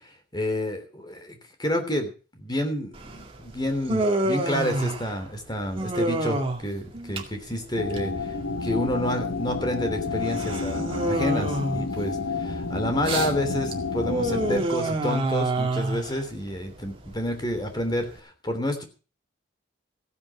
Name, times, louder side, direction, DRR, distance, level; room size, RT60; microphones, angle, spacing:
voice 1, 0.3-8.3 8.6-18.8, left 1 dB, 20° left, 7 dB, 3.2 m, -29 dB
Human voice, 2.9-18.2, right 1 dB, 25° right, 2.1 m, -29 dB
sound 1, 7.8-14.6, left 4 dB, 80° left, 1.2 m, -30 dB
16.0 x 9.6 x 6.1 m, 0.35 s
head